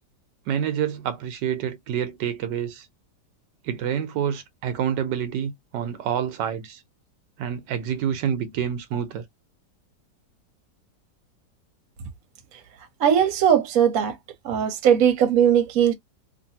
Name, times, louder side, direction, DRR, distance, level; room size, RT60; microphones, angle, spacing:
voice 1, 0.5-2.9 3.6-6.8 7.4-9.2, right 9 dB, 85° right, 1.3 m, -27 dB
voice 2, 13.0-14.2 14.4-15.9, right 9 dB, 60° right, 1.2 m, -19 dB
3.0 x 2.6 x 2.7 m
omnidirectional pair, 1.8 m